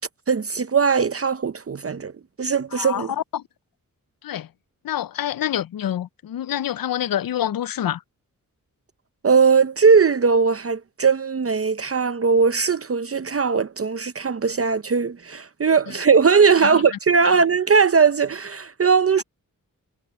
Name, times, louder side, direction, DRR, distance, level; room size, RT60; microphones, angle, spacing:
voice 1, 0.3-2.1 2.4-3.1 9.2-19.2, right 5 dB, 45° right, 0.6 m, -19 dB
voice 2, 2.7-3.4 4.2-4.5 4.8-8.0 16.6-16.8 17.2-17.4, left 11 dB, 85° left, 0.5 m, -27 dB
wide cardioid pair, 95°, 33 cm